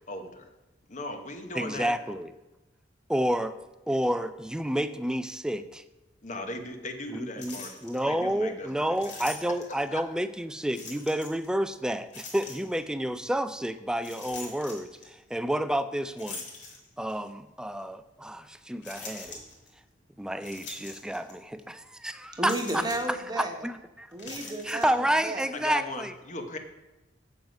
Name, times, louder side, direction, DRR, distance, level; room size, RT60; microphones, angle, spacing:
voice 1, 0.1-0.5 0.9-2.0 6.2-9.2 9.9-10.0 25.5-26.6, left 2 dB, 45° left, 6 dB, 1.0 m, -38 dB
voice 2, 1.6-2.3 3.1-3.5 3.9-5.8 7.1-16.4 17.0-19.4 20.2-22.8 23.4-24.1 24.6-26.1, right 1 dB, 5° right, 12 dB, 0.3 m, -30 dB
sound 1, 7.4-8.0 9.0-9.9 10.7-11.5 12.1-12.8 14.0-15.1 16.2-17.2 17.8-17.9 18.8-19.7 20.4-21.3 21.6-21.7 22.4-23.2 24.1-24.9, left 3 dB, 75° left, 2.3 m, -42 dB
voice 3, 22.3-23.5 24.1-25.4, right 2 dB, 25° right, 4 dB, 1.1 m, -33 dB
7.7 x 7.1 x 5.2 m, 1.0 s
head